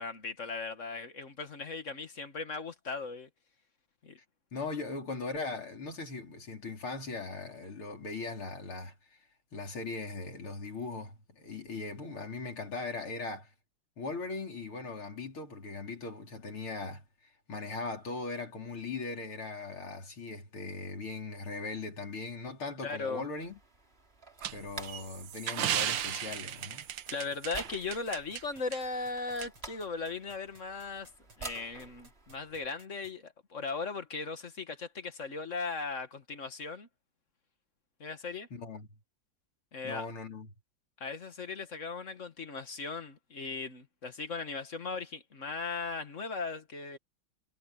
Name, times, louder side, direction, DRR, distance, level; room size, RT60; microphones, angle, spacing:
voice 1, 0.0-3.3 4.0-4.2 22.8-23.2 27.1-31.1 31.4-36.9 38.0-38.5 39.7-40.1 41.0-47.0, left 4 dB, 40° left, 1.8 m, -38 dB
voice 2, 4.5-9.2 9.5-13.5 14.0-23.6 24.5-26.9 38.5-38.9 39.8-40.5, left 3 dB, 85° left, 5.1 m, -39 dB
sound 1, 23.4-32.7, right 3 dB, 30° right, 3.2 m, -50 dB
sound 2, 24.4-28.4 28.7-28.8 29.4-29.5, right 10 dB, 70° right, 1.6 m, -35 dB
sound 3, 25.3-33.1, right 2 dB, 85° right, 8.6 m, -59 dB
omnidirectional pair, 2.3 m